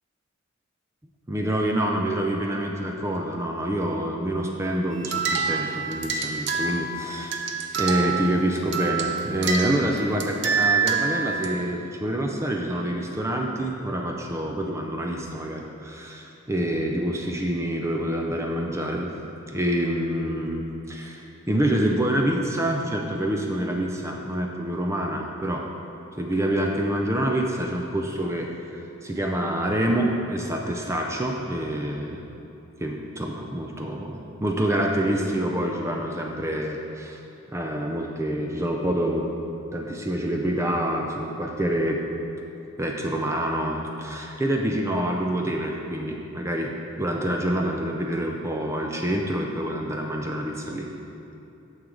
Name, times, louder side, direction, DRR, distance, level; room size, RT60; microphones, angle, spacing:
voice 1, 1.3-19.1 19.4-25.7 26.2-32.2 32.8-37.2 37.5-39.3 39.7-42.0 42.8-46.7 47.0-50.9, right 1 dB, 15° right, 1 dB, 0.4 m, -27 dB
sound 1, 4.9-11.5, right 5 dB, 55° right, 0.6 m, -27 dB
9.0 x 6.4 x 3.8 m, 2.9 s
head